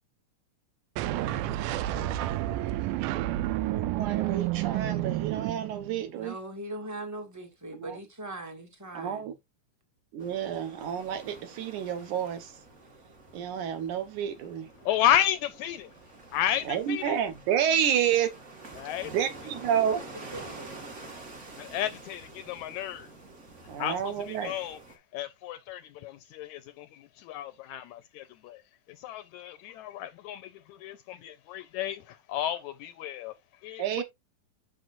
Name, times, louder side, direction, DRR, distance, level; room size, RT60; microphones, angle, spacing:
sound 1, 1.0-6.1, right 14 dB, 90° right, 2.2 m, -30 dB
voice 1, 3.7-6.4 7.7-8.0 8.9-9.3 10.1-12.6 13.3-14.7 16.7-18.3 19.0-20.0 23.7-24.5 33.8-34.0, right 9 dB, 75° right, 2.5 m, -30 dB
voice 2, 6.1-9.2 20.3-20.7, right 1 dB, 10° right, 1.0 m, -40 dB
sound 2, 10.2-25.0, right 3 dB, 35° right, 1.3 m, -48 dB
voice 3, 14.8-15.9 16.3-17.2 18.8-19.1 21.6-23.1 23.8-24.8 25.1-28.6 28.9-33.3 33.6-34.0, left 11 dB, 80° left, 1.7 m, -32 dB
7.6 x 6.6 x 2.5 m
omnidirectional pair, 3.7 m